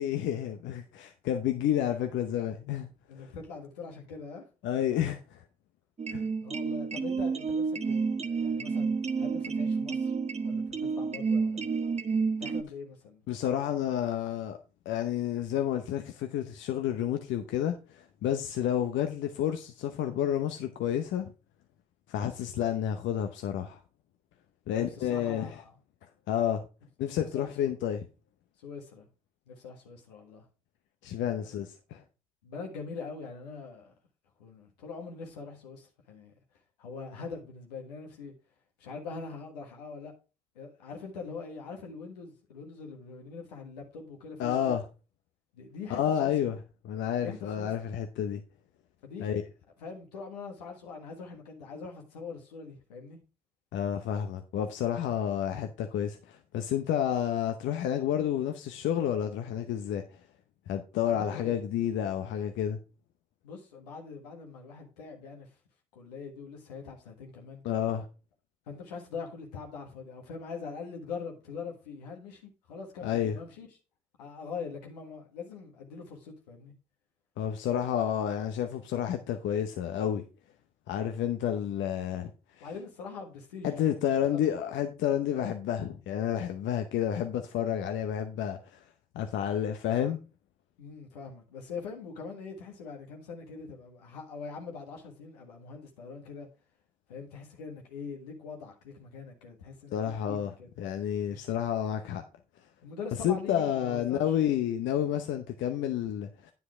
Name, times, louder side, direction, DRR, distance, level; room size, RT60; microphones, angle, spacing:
voice 1, 0.0-2.9 3.2-3.3 4.6-5.4 6.1-6.2 13.3-14.6 14.9-21.3 22.1-23.8 24.7-25.5 26.3-26.6 27.0-28.1 31.0-32.0 44.4-44.8 45.9-46.6 46.8-48.4 49.2-49.4 53.7-60.0 60.7-62.8 67.6-68.1 73.0-73.4 77.4-80.2 80.9-82.3 82.6-82.7 83.6-88.8 89.1-90.2 99.9-100.5 100.8-102.2 103.2-106.5, left 10 dB, 70° left, 0.8 m, -30 dB
voice 2, 3.1-4.5 6.4-10.1 10.4-11.8 12.4-13.2 24.7-25.8 27.1-27.7 28.6-29.1 29.5-30.4 32.4-33.9 34.4-36.3 36.8-38.3 38.8-40.1 40.5-44.7 45.5-46.3 47.2-47.7 49.0-49.4 49.8-53.2 61.0-61.6 63.4-65.5 65.9-67.6 68.7-73.7 74.2-76.7 82.6-83.9 84.2-84.4 90.8-96.5 97.1-100.7 101.3-101.5 102.8-104.4, left 5 dB, 90° left, 1.5 m, -43 dB
sound 1, 6.0-12.6, right 5 dB, 30° right, 0.9 m, -30 dB
9.7 x 5.7 x 4.9 m
hypercardioid pair, 40°, 20 cm